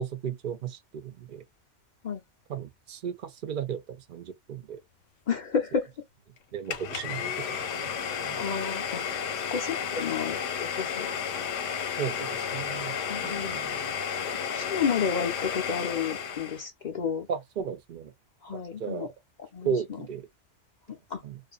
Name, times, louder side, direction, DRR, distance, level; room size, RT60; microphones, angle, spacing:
voice 1, 0.0-1.4 2.5-4.8 6.5-8.4 12.0-13.0 13.2-13.9 17.3-18.1 18.5-19.1 19.6-20.3 21.2-21.4, right 7 dB, 50° right, 0.7 m, -35 dB
voice 2, 5.3-5.9 8.4-9.1 9.5-11.1 13.1-13.6 14.5-17.3 18.4-19.1 19.5-19.7 21.1-21.2, left 6 dB, 50° left, 0.5 m, -31 dB
Domestic sounds home sounds, 6.7-16.7, left 7 dB, 85° left, 1.0 m, -32 dB
2.5 x 2.5 x 2.2 m
omnidirectional pair, 1.2 m